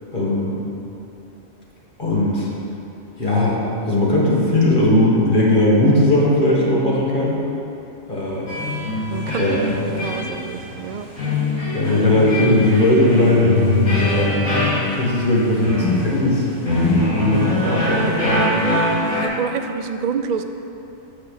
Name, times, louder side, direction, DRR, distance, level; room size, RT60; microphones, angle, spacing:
voice 1, 0.1-0.6 2.0-2.5 3.2-7.4 8.1-8.5 9.3-9.6 11.7-14.3 14.8-16.4 16.8-18.9, left 1 dB, 40° left, -5 dB, 1.8 m, -18 dB
sound 1, 8.5-19.3, left 1 dB, 90° left, 2.7 m, -23 dB
voice 2, 9.1-11.1 19.1-20.4, right 6 dB, 75° right, 8 dB, 0.4 m, -28 dB
6.8 x 5.7 x 7.3 m, 2.8 s
omnidirectional pair, 1.3 m